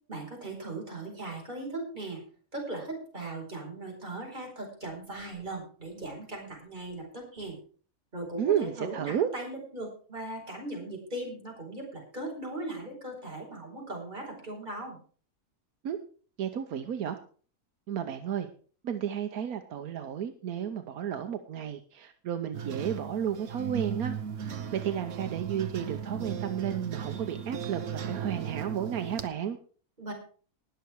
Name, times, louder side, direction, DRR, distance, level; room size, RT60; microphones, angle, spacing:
voice 1, 0.1-2.2 2.5-7.6 8.1-15.0 30.0-30.1, right 2 dB, 30° right, -1 dB, 5.2 m, -38 dB
voice 2, 8.4-9.3 15.8-16.0 16.4-17.2 17.9-18.5 18.8-29.6, right 9 dB, 80° right, 7 dB, 1.3 m, -32 dB
sound 1, 22.5-29.3, right 7 dB, 60° right, 1.2 m, -37 dB
20.0 x 6.9 x 4.6 m, 0.42 s
omnidirectional pair, 1.5 m